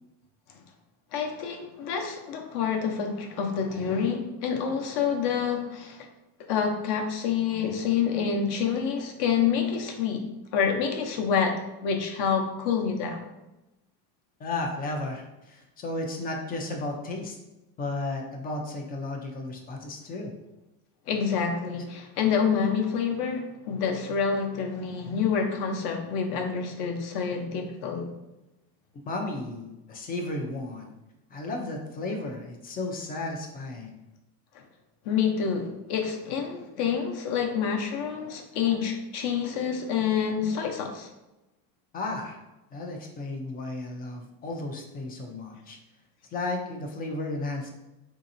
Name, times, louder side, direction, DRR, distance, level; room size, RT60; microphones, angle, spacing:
voice 1, 1.1-6.1 6.5-10.3 10.5-13.2 21.1-28.1 34.5-34.6 35.0-41.1, left 6 dB, 55° left, 4 dB, 0.7 m, -27 dB
voice 2, 14.4-17.4 17.8-20.3 29.1-30.9 31.3-34.0 41.9-42.4 42.7-45.8 46.3-47.7, left 2 dB, 25° left, 2 dB, 0.3 m, -34 dB
4.0 x 2.8 x 2.5 m, 0.98 s
supercardioid pair, 130°, 45 cm